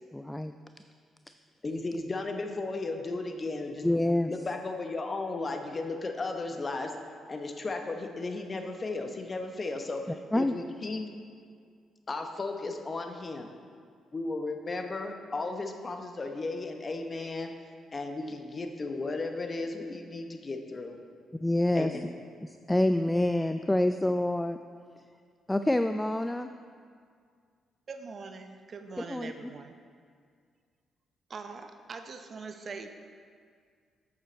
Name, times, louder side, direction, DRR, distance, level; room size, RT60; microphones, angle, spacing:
voice 1, 0.1-0.6 3.8-4.3 10.3-10.5 21.4-21.9 22.4-24.6 25.5-26.5 29.1-29.5, left 1 dB, 10° left, 9 dB, 0.3 m, -27 dB
voice 2, 1.6-3.9 4.3-6.9 7.3-10.1 10.3-11.1 12.1-13.5 14.1-17.5 17.9-21.0 21.7-22.1, left 3 dB, 40° left, 5 dB, 0.9 m, -35 dB
voice 3, 27.9-29.8 31.3-32.9, right 4 dB, 50° right, 7 dB, 0.7 m, -42 dB
8.0 x 6.8 x 4.4 m, 2.1 s
hypercardioid pair, 50°, 0 cm